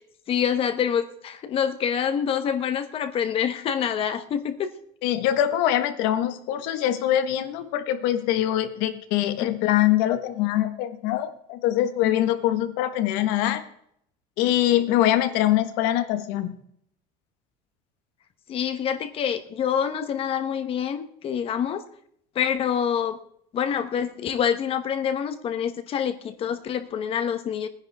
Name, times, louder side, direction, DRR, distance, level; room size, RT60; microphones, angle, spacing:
voice 1, 0.3-4.7 9.4-9.5 18.5-21.8 22.3-23.2 23.5-27.7, left 8 dB, 35° left, 9 dB, 1.1 m, -26 dB
voice 2, 5.0-13.6 14.4-16.6, left 12 dB, 90° left, 9 dB, 1.5 m, -23 dB
20.5 x 10.0 x 3.5 m, 0.69 s
cardioid pair, 170°, 17 cm